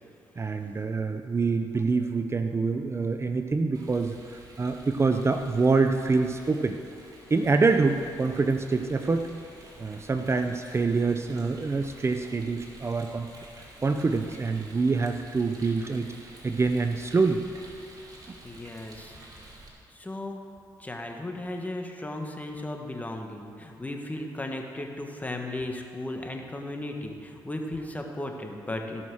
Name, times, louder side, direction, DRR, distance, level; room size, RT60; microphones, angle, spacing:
voice 1, 0.4-6.8 7.3-9.3 9.8-13.3 13.8-16.1 16.4-17.4 18.3-18.4, right 4 dB, 30° right, 7 dB, 0.6 m, -26 dB
Rain, 3.7-19.7, right 1 dB, 45° right, 2.9 m, -49 dB
voice 2, 18.4-19.2 19.9-20.4 20.8-29.1, left 1 dB, 20° left, 2 dB, 1.6 m, -35 dB
16.0 x 6.2 x 6.3 m, 2.4 s
cardioid pair, 65°, 9 cm